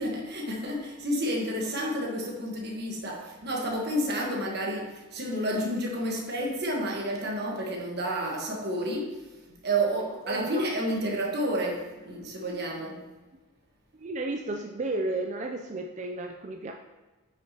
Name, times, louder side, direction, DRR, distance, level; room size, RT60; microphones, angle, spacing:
voice 1, 0.0-9.2 9.5-13.0, right 1 dB, 50° right, 0 dB, 1.3 m, -30 dB
voice 2, 10.3-10.6 13.9-16.7, right 2 dB, 35° right, 3 dB, 0.3 m, -33 dB
9.0 x 5.9 x 2.9 m, 1.2 s
head